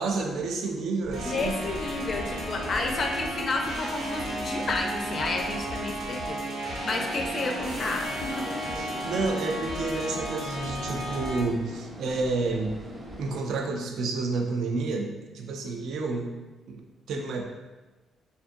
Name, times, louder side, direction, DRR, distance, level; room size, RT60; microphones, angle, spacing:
voice 1, 0.0-1.6 8.8-12.7 13.2-16.3 16.7-17.4, right 3 dB, 75° right, 3 dB, 0.3 m, -30 dB
sound 1, 1.0-6.1, right 1 dB, 55° right, 0.9 m, -42 dB
sound 2, 1.1-11.4, right 1 dB, 90° right, 1.0 m, -34 dB
voice 2, 1.2-8.5, left 3 dB, 45° left, 2 dB, 0.4 m, -31 dB
sound 3, 6.7-13.4, equal, 25° right, 0.7 m, -41 dB
2.5 x 2.5 x 2.5 m, 1.2 s
cardioid pair, 90°, 0 cm